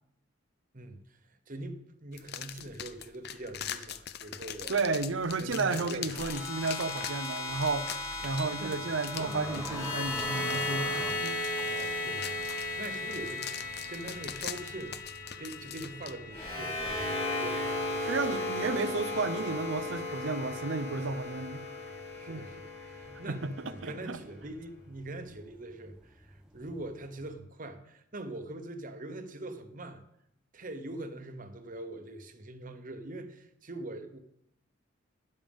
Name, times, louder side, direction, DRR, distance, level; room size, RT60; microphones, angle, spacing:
voice 1, 0.7-4.8 5.4-6.1 8.5-8.7 11.6-13.5 13.9-15.0 15.4-18.0 22.2-30.0 30.5-34.2, right 2 dB, 40° right, 1.0 m, -43 dB
sound 1, 2.1-16.1, left 10 dB, 55° left, 0.6 m, -43 dB
voice 2, 4.7-7.9 8.2-11.4 18.0-21.7 22.3-22.5 23.3-24.2, right 3 dB, 70° right, 0.7 m, -32 dB
sound 2, 6.1-24.3, left 2 dB, 30° left, 4.1 m, -36 dB
sound 3, 8.1-27.3, right 1 dB, 5° right, 0.9 m, -49 dB
12.5 x 10.5 x 3.6 m
head